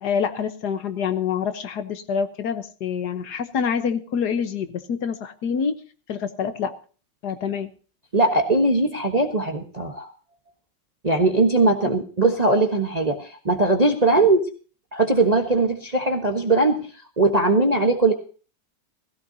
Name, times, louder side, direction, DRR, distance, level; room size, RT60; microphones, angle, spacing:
voice 1, 0.0-5.8 6.1-6.7 7.2-7.7 11.8-11.9 14.1-14.2, left 7 dB, 65° left, 10 dB, 1.6 m, -26 dB
voice 2, 8.1-10.1 11.0-14.4 14.9-16.9 17.2-18.1, right 2 dB, 25° right, 4 dB, 1.2 m, -20 dB
17.5 x 16.0 x 2.7 m, 0.38 s
omnidirectional pair, 2.0 m